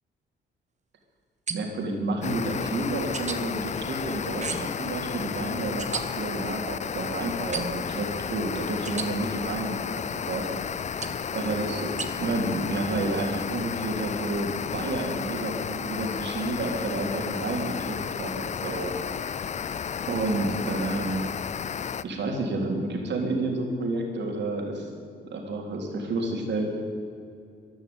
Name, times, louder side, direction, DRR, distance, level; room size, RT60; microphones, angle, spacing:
sound 1, 1.5-1.9 3.1-3.4 4.4-4.8 5.8-6.0 7.5-7.9 8.9-9.1 11.0-11.3 12.0-12.1, right 5 dB, 35° right, 1.4 m, -33 dB
voice 1, 1.5-10.5 11.3-11.9 12.2-18.9 19.3-19.4 20.1-21.2 22.0-24.9 25.2-26.7, right 2 dB, 65° right, 1 dB, 3.6 m, -30 dB
sound 2, 2.2-22.0, left 7 dB, 35° left, 0.5 m, -33 dB
15.0 x 11.0 x 8.8 m, 2.4 s
cardioid pair, 90°, 20 cm